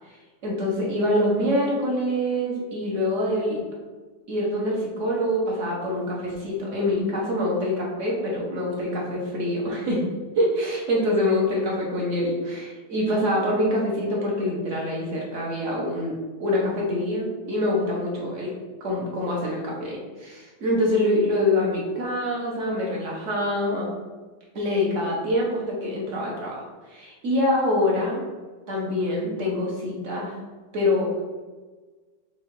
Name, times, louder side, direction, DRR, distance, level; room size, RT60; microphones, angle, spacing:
voice 1, 0.4-3.6 4.3-10.0 10.3-18.5 18.8-23.9 24.5-28.2 28.7-30.3 30.7-31.2, left 1 dB, 50° right, -3 dB, 1.3 m, -25 dB
6.0 x 2.6 x 3.1 m, 1.3 s
omnidirectional pair, 1.9 m